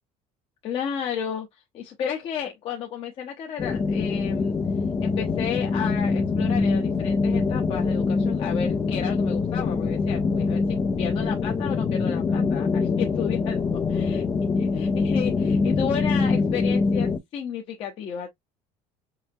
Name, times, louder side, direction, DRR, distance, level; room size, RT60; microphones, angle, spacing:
voice 1, 0.6-4.6 5.0-10.6 11.0-14.2 14.6-18.3, left 8 dB, 40° left, 0.9 m, -33 dB
sound 1, 3.6-17.2, left 4 dB, 20° left, 0.4 m, -24 dB
5.6 x 2.0 x 2.7 m
cardioid pair, 160°, 14 cm